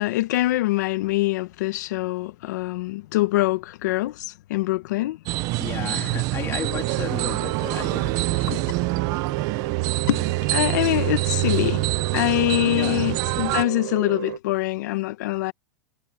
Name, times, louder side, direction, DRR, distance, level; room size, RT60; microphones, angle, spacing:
voice 1, 0.0-5.2 8.5-8.6 10.1-10.2 10.5-11.8 12.1-15.5, left 17 dB, 55° left, 1.2 m, -24 dB
sound 1, 5.3-13.6, right 20 dB, 30° right, 0.8 m, -26 dB
voice 2, 5.6-8.6 12.7-13.2, left 10 dB, 20° left, 3.3 m, -34 dB
sound 2, 6.6-14.4, right 15 dB, 60° right, 7.2 m, -33 dB
supercardioid pair, 165°, 11 cm